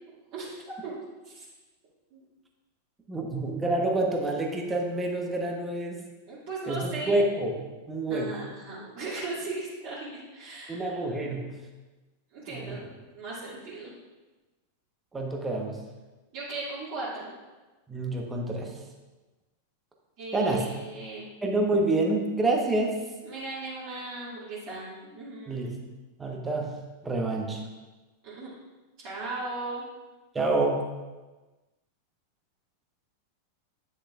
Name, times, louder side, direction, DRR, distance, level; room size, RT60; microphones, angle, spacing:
voice 1, 0.3-0.9 1.2-1.4 2.1-2.2 6.3-7.2 8.1-11.2 12.3-13.9 16.3-17.3 20.2-21.3 23.2-25.7 28.2-28.5 29.0-29.8, right 3 dB, 40° right, -10 dB, 2.3 m, -37 dB
voice 2, 3.1-6.0 6.7-7.6 7.9-8.3 10.7-11.5 12.5-12.8 15.1-15.8 17.9-18.7 20.3-20.7 21.4-23.0 25.5-25.7 26.2-26.8 27.0-27.6 30.3-30.8, right 2 dB, 15° right, 1 dB, 1.1 m, -27 dB
9.7 x 6.5 x 2.5 m, 1.2 s
figure-of-eight pair, 90°, 0 cm